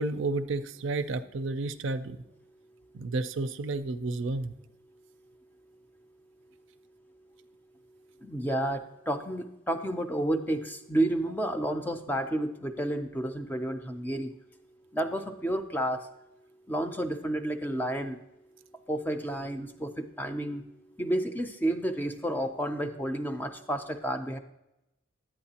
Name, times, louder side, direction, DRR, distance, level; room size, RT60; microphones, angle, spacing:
voice 1, 0.0-2.2 2.9-4.5, right 3 dB, 70° right, 10 dB, 0.4 m, -31 dB
voice 2, 8.2-14.4 14.9-16.0 16.7-18.2 18.9-20.6 21.0-24.4, right 1 dB, 10° left, 7 dB, 0.4 m, -31 dB
10.5 x 8.8 x 2.9 m, 0.90 s
head